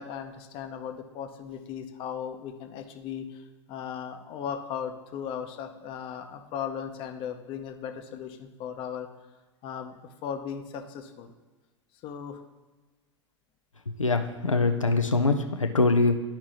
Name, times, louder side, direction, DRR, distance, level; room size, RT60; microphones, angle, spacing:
voice 1, 0.0-9.1 9.6-9.9 10.2-11.3 12.0-12.4, left 8 dB, 35° left, 6 dB, 0.7 m, -37 dB
voice 2, 14.0-16.1, left 3 dB, 90° left, 5 dB, 0.5 m, -23 dB
11.5 x 4.6 x 2.9 m, 1.2 s
figure-of-eight pair, 95°, 16 cm